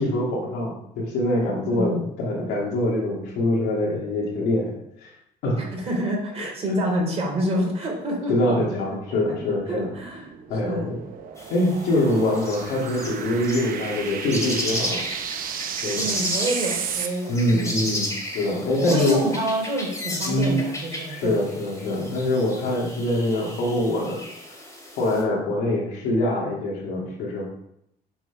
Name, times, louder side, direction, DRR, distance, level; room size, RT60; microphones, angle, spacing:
voice 1, 0.0-4.7 5.0-5.1 5.4-5.6 8.3-9.9 10.5-11.0 11.5-15.0 15.8-16.1 17.3-19.2 20.2-20.6 21.1-24.2 25.0-27.5, left 1 dB, 90° left, -3 dB, 2.7 m, -24 dB
voice 2, 1.6-2.0 5.6-8.3 9.7-10.3 10.6-10.9 16.0-17.8 18.7-21.4, equal, 35° right, -1 dB, 3.2 m, -27 dB
sound 1, 9.6-17.1, right 8 dB, 55° right, 0.9 m, -33 dB
sound 2, 11.4-25.2, left 1 dB, 20° left, 2.4 m, -34 dB
7.1 x 4.7 x 5.9 m, 0.78 s
cardioid pair, 110°, 17 cm